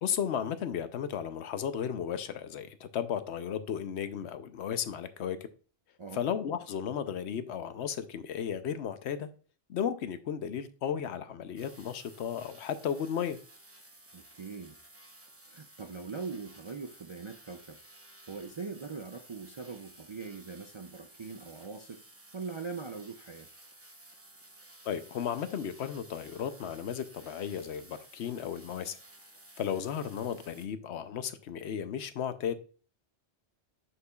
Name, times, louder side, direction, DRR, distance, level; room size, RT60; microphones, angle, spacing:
voice 1, 0.0-5.4 6.1-9.3 9.7-13.4 24.8-29.0 29.6-32.5, left 8 dB, 80° left, 1.0 m, -34 dB
sound 1, 11.6-30.7, right 1 dB, 15° right, 0.7 m, -55 dB
voice 2, 14.1-14.8 15.5-22.0 22.3-23.5, right 4 dB, 50° right, 0.3 m, -42 dB
7.2 x 6.6 x 2.3 m
omnidirectional pair, 1.1 m